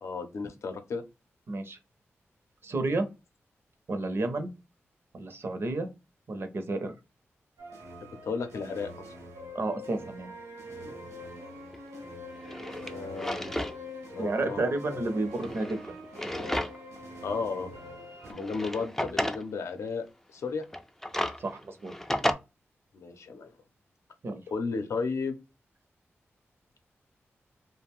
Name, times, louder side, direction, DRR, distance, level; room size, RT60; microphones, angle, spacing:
voice 1, 0.0-1.0 8.0-9.1 10.8-10.9 12.8-13.5 14.1-14.6 17.2-17.7 18.3-20.0 20.3-20.6 22.9-23.5 24.5-25.4, left 4 dB, 80° left, 6 dB, 0.5 m, -34 dB
voice 2, 1.5-1.8 2.6-3.1 3.9-4.5 5.1-5.9 6.3-6.9 9.5-10.3 14.2-15.9 16.4-16.5 21.4-21.9 24.2-24.4, right 2 dB, 55° right, 7 dB, 0.6 m, -31 dB
sound 1, 7.6-18.3, left 1 dB, 80° right, 0.8 m, -44 dB
Drawer open or close, 11.7-11.8 12.3-13.8 14.1-14.2 15.3-17.0 17.4-17.5 18.3-19.4 20.6-22.3, left 1 dB, 5° left, 0.3 m, -33 dB
2.4 x 2.1 x 3.4 m, 0.26 s
cardioid pair, 70°, 5 cm